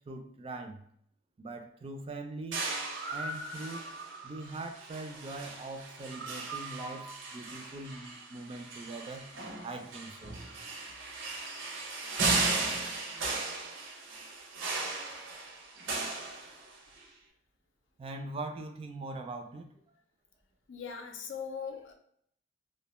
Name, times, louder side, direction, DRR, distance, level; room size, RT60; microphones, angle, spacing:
voice 1, 0.1-0.8 1.4-2.6 3.1-3.9 4.2-9.3 9.6-10.4 18.0-19.8, right 2 dB, 30° right, 5 dB, 0.3 m, -42 dB
sound 1, 2.5-17.0, right 3 dB, 80° right, 0.6 m, -36 dB
voice 2, 20.7-21.9, left 6 dB, 90° left, 4 dB, 0.5 m, -40 dB
2.3 x 2.1 x 2.9 m, 0.66 s
head